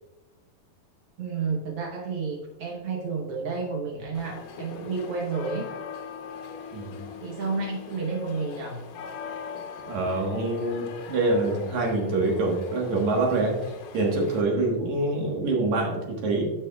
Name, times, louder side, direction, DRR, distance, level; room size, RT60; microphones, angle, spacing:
voice 1, 1.2-5.7 7.2-8.9, right 4 dB, 85° right, -1 dB, 1.2 m, -31 dB
sound 1, 4.1-14.4, left 6 dB, 70° left, 2.4 m, -41 dB
voice 2, 6.7-7.1 9.9-13.5 13.9-16.5, right 2 dB, 60° right, -1 dB, 2.5 m, -25 dB
11.0 x 7.0 x 2.3 m, 1.1 s
omnidirectional pair, 4.2 m